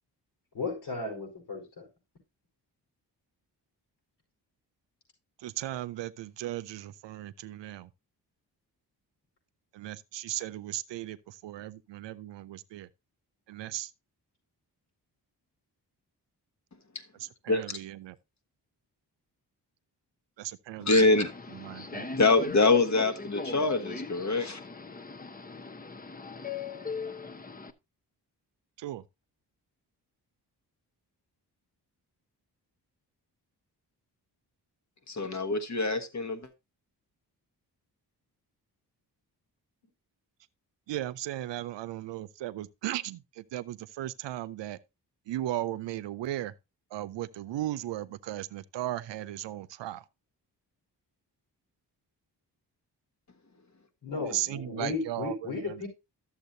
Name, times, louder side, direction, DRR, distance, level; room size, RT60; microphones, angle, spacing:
voice 1, 0.5-1.9 54.0-55.9, left 3 dB, 70° left, 5.2 m, -35 dB
voice 2, 5.4-7.9 9.7-12.9 13.5-13.9 17.2-18.1 20.4-21.3 21.5-22.1 28.8-29.0 40.9-44.8 45.3-46.5 46.9-50.0 54.2-55.8, right 14 dB, 85° right, 0.6 m, -36 dB
voice 3, 20.8-21.3 22.1-24.6 35.1-36.4, left 3 dB, 40° left, 1.5 m, -24 dB
Subway metro underground, 21.1-27.7, left 4 dB, 20° left, 0.7 m, -40 dB
11.5 x 7.3 x 2.7 m
cardioid pair, 60°, 42 cm